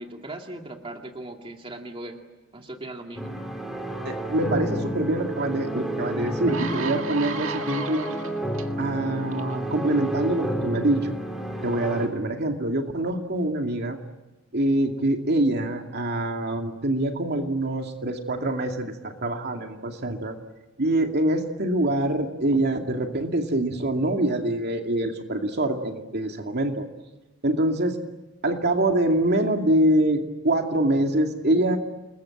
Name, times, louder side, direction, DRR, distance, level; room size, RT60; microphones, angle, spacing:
voice 1, 0.0-2.2 2.5-3.4, right 1 dB, 25° right, 3 dB, 2.4 m, -38 dB
sound 1, 3.1-12.1, right 1 dB, ahead, 5.0 m, -31 dB
voice 2, 4.0-8.1 8.8-11.1 11.6-14.0 14.5-20.4 20.8-26.9 27.4-28.0 28.4-31.8, right 1 dB, 55° right, 4 dB, 2.4 m, -25 dB
sound 2, 5.7-5.8 6.3-8.6 9.3-9.5, right 5 dB, 80° right, 1.8 m, -34 dB
29.0 x 21.5 x 8.7 m, 1.1 s
head